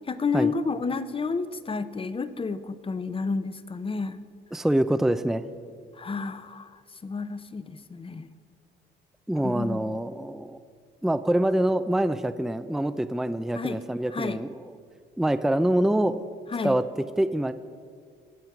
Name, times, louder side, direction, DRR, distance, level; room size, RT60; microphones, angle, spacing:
voice 1, 0.1-4.2 6.0-6.7 7.0-8.3 9.4-9.9 13.6-13.8 14.1-14.4 16.5-16.8, left 4 dB, 25° left, 13 dB, 0.8 m, -30 dB
voice 2, 4.5-5.4 9.3-10.6 11.0-14.7 15.2-16.2 16.6-17.5, right 1 dB, ahead, 10 dB, 0.5 m, -25 dB
24.0 x 8.0 x 5.9 m, 2.1 s
cardioid pair, 90°, 20 cm